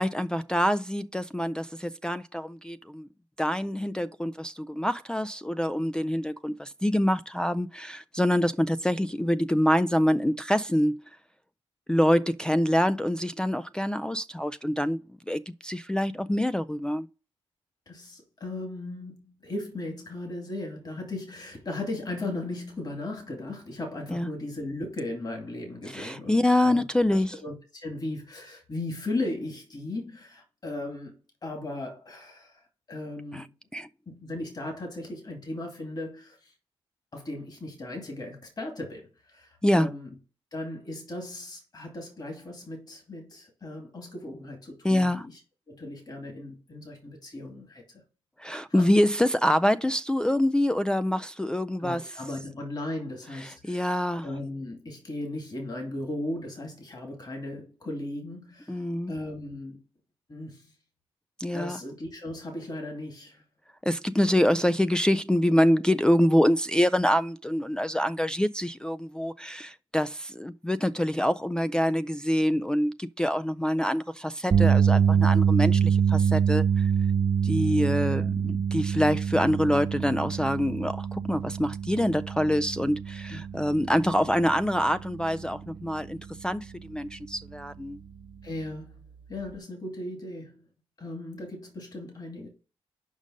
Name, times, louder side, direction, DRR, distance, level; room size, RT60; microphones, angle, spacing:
voice 1, 0.0-3.1 3.4-11.0 11.9-15.0 15.3-17.1 24.1-24.3 25.9-27.4 33.3-33.4 33.7-33.9 39.6-39.9 44.8-45.3 48.4-52.0 53.6-54.3 58.7-59.1 61.4-61.8 63.8-76.9 77.4-88.0, equal, 10° left, 0.3 m, -25 dB
voice 2, 17.9-26.8 27.1-33.5 34.1-36.5 37.1-40.1 40.5-45.4 45.7-48.0 48.7-48.9 51.8-59.8 60.3-60.7 61.5-63.4 78.1-78.3 83.3-83.4 88.4-90.6 91.0-92.5, left 2 dB, 40° left, 2.5 m, -37 dB
sound 1, 74.5-86.8 87.1-87.4 89.5-89.6, right 7 dB, 45° right, 0.6 m, -25 dB
5.3 x 5.1 x 6.4 m
cardioid pair, 80°, 10 cm